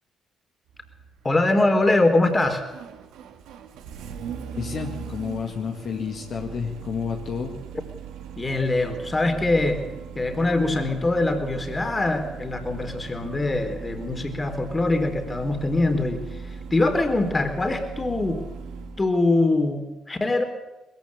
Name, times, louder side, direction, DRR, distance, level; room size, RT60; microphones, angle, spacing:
Engine starting, 0.7-19.1, right 6 dB, 75° right, 1.9 m, -39 dB
voice 1, 1.2-2.6 8.4-9.8 10.2-16.2 16.5-18.4 19.0-20.4, left 2 dB, 25° left, 6 dB, 4.0 m, -23 dB
voice 2, 4.5-7.6, left 6 dB, 60° left, 2 dB, 2.1 m, -30 dB
21.5 x 14.5 x 8.7 m, 1.0 s
hypercardioid pair, 50°, 0 cm